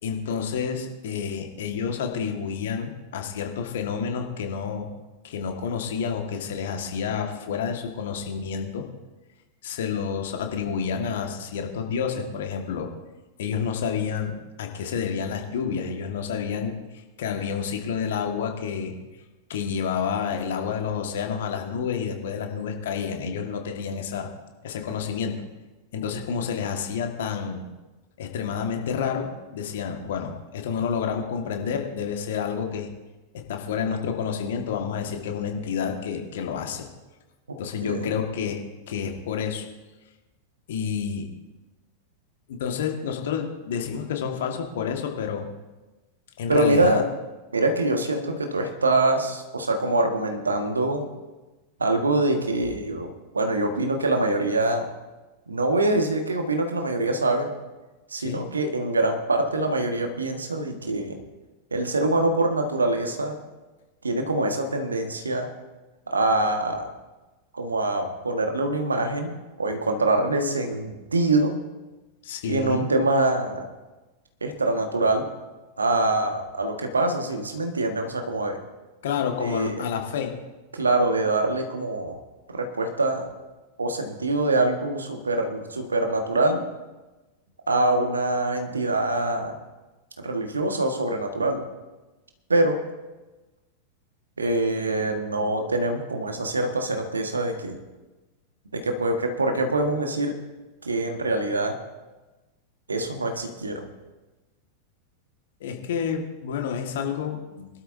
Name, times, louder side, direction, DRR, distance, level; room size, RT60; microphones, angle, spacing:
voice 1, 0.0-4.9 5.2-8.9 9.6-12.9 13.4-18.9 19.5-24.3 24.6-25.4 25.9-27.6 28.2-32.9 33.3-36.8 37.6-38.6 38.9-39.7 40.7-41.3 42.5-45.5 46.4-47.0 58.2-58.4 72.2-72.9 79.0-80.3 105.6-107.4, left 7 dB, 60° left, 3 dB, 1.8 m, -29 dB
voice 2, 46.5-47.0 47.5-51.1 51.8-54.8 55.5-57.5 58.1-61.2 61.7-63.4 64.0-65.5 66.1-66.9 67.5-69.3 69.6-71.5 72.5-73.7 74.4-75.3 75.8-78.6 79.4-79.8 80.7-82.2 82.5-83.2 83.8-86.6 87.7-89.5 90.2-91.6 92.5-92.8 94.4-97.8 98.7-100.3 100.8-101.8 102.9-103.9 107.6-107.7, right 2 dB, 75° right, 4 dB, 1.7 m, -24 dB
22.0 x 12.5 x 2.8 m, 1.1 s
figure-of-eight pair, 90°, 0 cm